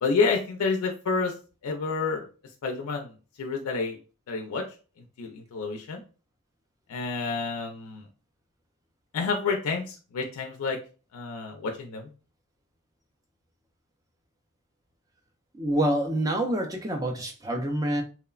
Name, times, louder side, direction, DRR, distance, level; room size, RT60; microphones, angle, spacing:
voice 1, 0.0-1.3 1.6-2.3 2.6-4.0 4.3-4.7 5.2-6.0 6.9-8.1 9.1-10.8 11.1-12.1, left 4 dB, 80° left, 0.4 m, -29 dB
voice 2, 15.6-18.0, right 1 dB, 15° right, 0.3 m, -27 dB
3.0 x 2.0 x 2.3 m
head